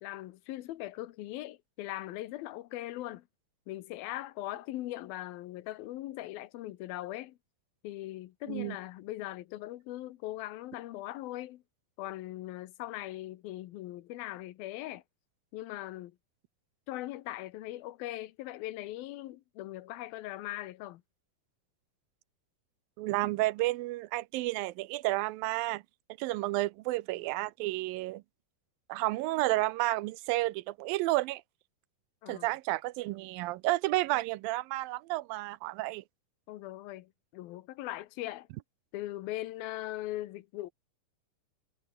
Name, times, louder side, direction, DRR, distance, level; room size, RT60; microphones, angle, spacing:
voice 1, 0.0-3.3 3.7-7.4 7.8-11.6 12.0-15.0 15.5-16.2 16.9-21.0 32.2-32.5 36.5-38.5 38.9-40.7, left 15 dB, 85° left, 2.8 m, -40 dB
voice 2, 23.0-25.8 26.2-28.2 28.9-31.4 32.3-36.0, right 19 dB, 85° right, 2.4 m, -31 dB
omnidirectional pair, 4.2 m